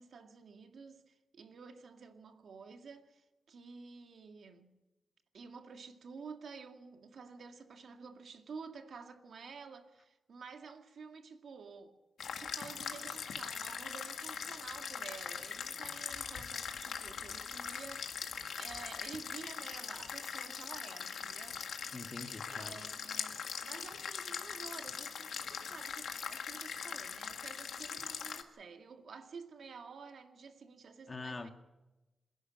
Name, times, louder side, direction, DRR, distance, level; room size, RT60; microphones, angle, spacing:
voice 1, 0.0-4.7 5.3-12.0 12.4-22.0 22.5-31.5, right 5 dB, 70° right, 2.0 m, -51 dB
sound 1, 12.2-28.4, left 7 dB, 90° left, 1.9 m, -41 dB
voice 2, 21.9-22.8 31.1-31.5, left 3 dB, 30° left, 1.8 m, -44 dB
27.5 x 11.5 x 9.9 m
wide cardioid pair, 115°, 0 cm